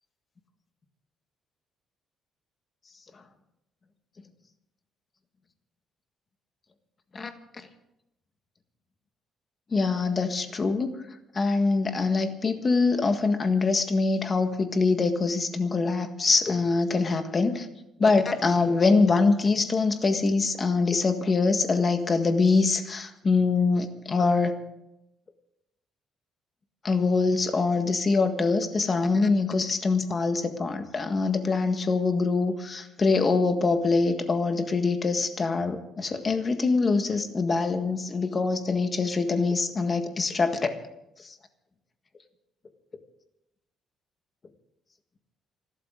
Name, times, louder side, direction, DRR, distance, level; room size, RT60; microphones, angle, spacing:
voice 1, 9.7-10.9 11.3-17.7 18.0-24.6 26.8-40.8 41.2-41.3, left 4 dB, 30° left, 7 dB, 1.6 m, -24 dB
27.0 x 12.5 x 3.9 m, 0.87 s
cardioid pair, 145°, 0 cm